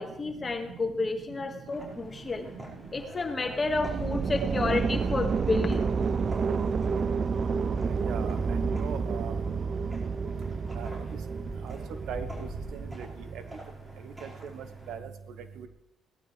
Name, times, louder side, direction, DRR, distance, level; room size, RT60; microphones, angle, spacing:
voice 1, 0.0-2.5 2.9-6.2, left 3 dB, 30° left, 5 dB, 1.9 m, -30 dB
sound 1, 1.7-14.9, right 1 dB, 25° right, 5.2 m, -45 dB
sound 2, 3.6-13.6, right 5 dB, 50° right, 0.5 m, -30 dB
voice 2, 8.0-9.3 10.8-10.9 11.6-11.8 12.1-12.3 12.9-13.1 14.9-15.0, right 8 dB, 80° right, 9 dB, 1.1 m, -38 dB
18.0 x 12.0 x 3.4 m, 0.83 s
cardioid pair, 90°, 0 cm